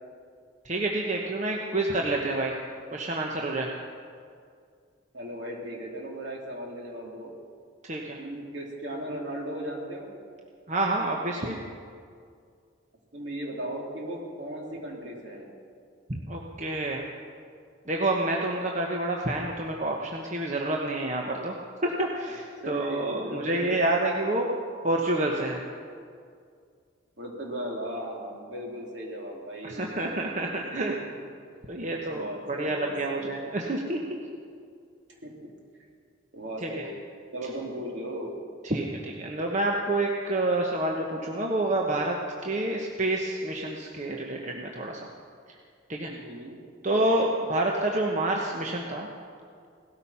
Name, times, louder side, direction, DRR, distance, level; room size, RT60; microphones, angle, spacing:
voice 1, 0.6-2.6 2.9-3.7 7.8-8.2 10.7-11.6 16.1-17.1 17.9-21.5 21.8-24.5 24.8-25.6 29.6-30.9 31.7-34.2 36.6-36.9 38.6-42.2 42.4-45.1 45.9-46.1 46.8-49.1, right 2 dB, 35° right, 0 dB, 1.1 m, -28 dB
voice 2, 5.1-7.3 8.2-10.1 13.1-15.5 22.6-23.8 27.2-29.9 32.1-33.3 35.2-35.5 36.3-36.8 37.3-38.5 46.1-46.6, right 1 dB, 65° right, -1 dB, 3.1 m, -36 dB
18.0 x 13.0 x 5.7 m, 2.2 s
head